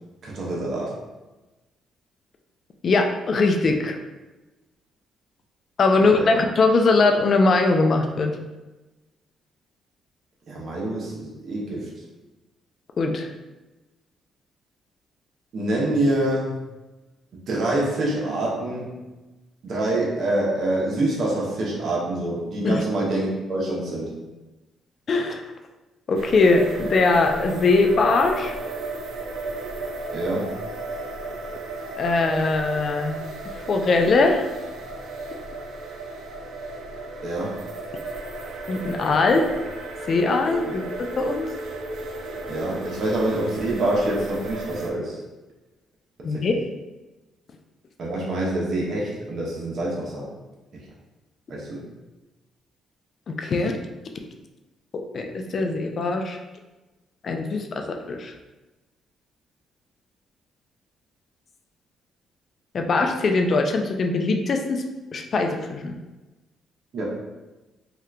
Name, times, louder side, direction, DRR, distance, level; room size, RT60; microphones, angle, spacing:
voice 1, 0.2-1.0 6.2-6.3 10.5-11.9 15.5-16.6 17.5-18.9 19.6-24.2 30.1-30.5 37.2-37.6 40.6-40.7 42.5-45.2 46.3-46.4 48.0-50.3 51.5-51.8 66.9-67.1, right 1 dB, 60° right, -4 dB, 0.9 m, -26 dB
voice 2, 2.8-4.0 5.8-8.3 13.0-13.3 22.6-22.8 25.1-25.4 26.1-28.5 32.0-33.2 33.7-34.5 38.7-39.5 40.1-40.8 41.2-41.5 46.2-46.5 53.3-53.8 54.9-56.4 57.2-58.3 62.7-64.8 65.1-66.0, left 3 dB, 50° left, 4 dB, 0.4 m, -21 dB
sound 1, 26.1-44.9, right 2 dB, 75° right, 0.4 m, -34 dB
2.8 x 2.4 x 3.3 m, 1.1 s
cardioid pair, 90°, 0 cm